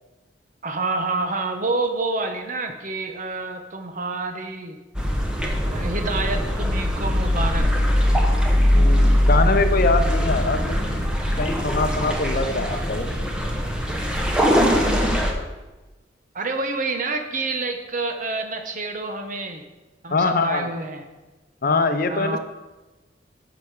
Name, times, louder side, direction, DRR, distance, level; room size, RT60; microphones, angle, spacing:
voice 1, 0.6-4.8 5.7-7.9 16.3-19.6 20.0-21.1 22.0-22.4, right 3 dB, 45° right, 6 dB, 1.0 m, -28 dB
sound 1, 4.9-15.3, equal, 5° right, 1.3 m, -21 dB
voice 2, 8.7-11.0 11.4-13.3 20.1-20.7 21.6-22.4, left 3 dB, 50° left, 8 dB, 0.7 m, -23 dB
10.5 x 7.2 x 4.8 m, 1.1 s
head